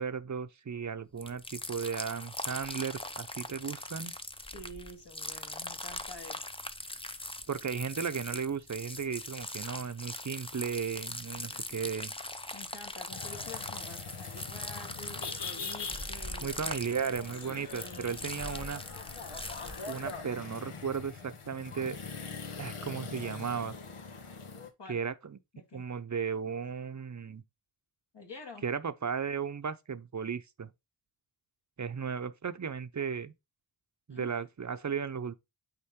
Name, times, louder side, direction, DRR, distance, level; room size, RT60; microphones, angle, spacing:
voice 1, 0.0-4.1 7.5-12.1 16.4-18.8 19.9-22.0 22.6-23.8 24.9-25.4 25.7-27.4 28.6-30.7 31.8-33.3 34.1-35.4, right 6 dB, 35° right, 0.7 m, -35 dB
sound 1, 1.2-20.2, left 1 dB, 10° left, 0.7 m, -41 dB
voice 2, 4.5-6.5 11.5-11.9 12.5-16.5 17.5-18.3 24.8-25.0 25.5-25.8 28.1-28.7 34.1-34.8, left 2 dB, 55° left, 2.2 m, -48 dB
sound 2, 13.1-24.7, left 5 dB, 85° left, 1.4 m, -43 dB
8.6 x 3.6 x 3.7 m
wide cardioid pair, 100°, 50 cm